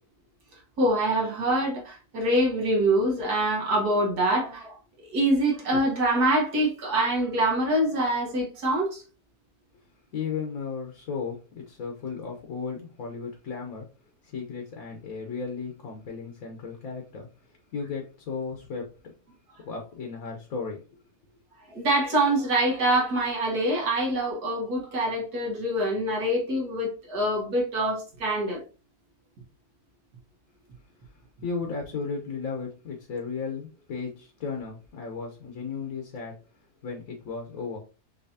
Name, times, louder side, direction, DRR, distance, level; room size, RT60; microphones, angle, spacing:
voice 1, 0.8-4.8 5.1-9.0 21.7-28.6, right 1 dB, 70° right, 2.0 m, -25 dB
voice 2, 10.1-13.9 14.2-17.3 17.7-18.9 19.6-20.8 31.4-36.4 36.8-37.8, left 5 dB, 60° left, 1.3 m, -35 dB
6.4 x 2.9 x 2.8 m
omnidirectional pair, 1.7 m